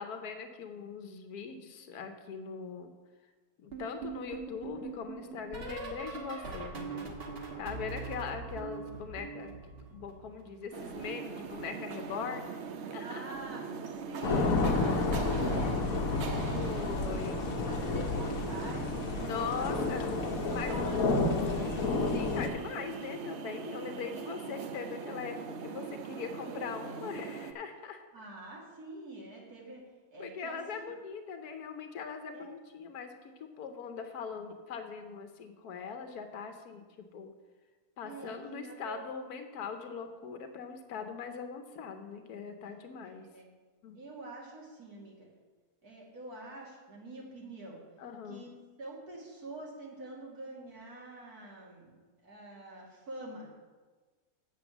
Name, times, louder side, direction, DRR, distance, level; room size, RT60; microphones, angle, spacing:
voice 1, 0.0-2.9 3.6-7.1 7.6-9.5 9.9-12.5 12.9-13.2 16.5-17.5 19.1-20.1 20.5-20.7 22.1-28.0 30.2-37.3 38.0-43.3 43.8-44.0 48.0-48.5, left 6 dB, 90° left, 7 dB, 1.4 m, -41 dB
sound 1, 3.7-10.5 10.8-12.3 13.3-13.7 13.9-14.3 15.8-16.1 16.4-16.7 18.3-18.4, right 5 dB, 40° right, 1.4 m, -43 dB
sound 2, 10.7-27.5, right 6 dB, 60° right, 0.8 m, -41 dB
voice 2, 13.0-17.3 17.6-19.7 20.2-21.1 21.4-21.8 28.1-29.8 30.1-30.8 32.3-32.5 38.0-39.0 43.0-43.5 43.9-45.3 45.8-47.8 48.3-48.5 48.8-52.0 52.2-53.5, right 2 dB, 75° right, -3 dB, 2.7 m, -46 dB
sound 3, 14.2-22.5, left 3 dB, 65° left, 1.4 m, -30 dB
7.9 x 6.8 x 7.0 m, 1.3 s
omnidirectional pair, 1.6 m